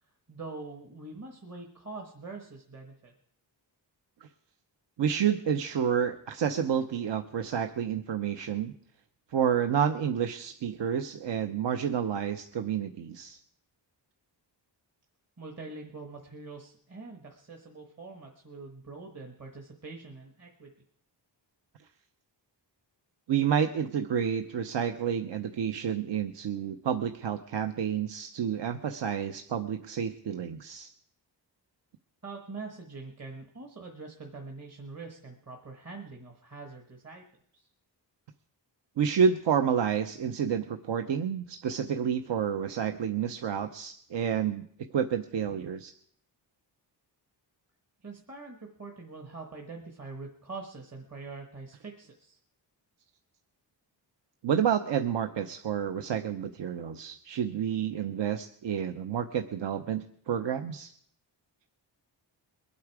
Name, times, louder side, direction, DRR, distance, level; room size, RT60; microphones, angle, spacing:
voice 1, 0.3-3.1 15.4-20.7 32.2-37.3 37.5-37.7 48.0-52.4, right 3 dB, 35° right, 1 dB, 1.4 m, -44 dB
voice 2, 5.0-8.7 9.3-13.4 23.3-30.9 39.0-44.6 44.9-45.9 54.4-60.9, right 8 dB, 75° right, 8 dB, 0.8 m, -29 dB
22.5 x 8.5 x 4.7 m, 0.64 s
wide cardioid pair, 150°, 44 cm